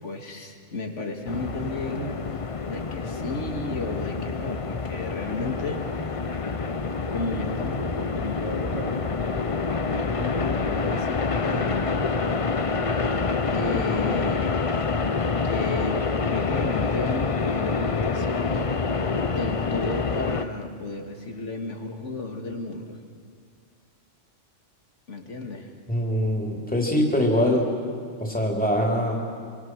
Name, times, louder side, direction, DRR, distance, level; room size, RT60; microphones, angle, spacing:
voice 1, 0.0-5.9 7.1-9.1 9.7-12.1 13.5-15.0 15.4-16.0 16.3-19.0 19.3-23.0 25.1-25.7, left 2 dB, 70° left, 4 dB, 2.5 m, -33 dB
sound 1, 1.3-20.4, left 4 dB, 30° left, 0.8 m, -27 dB
voice 2, 25.9-27.7 28.2-29.2, left 1 dB, 5° left, -1 dB, 3.5 m, -23 dB
27.0 x 25.5 x 6.3 m, 2.2 s
omnidirectional pair, 1.3 m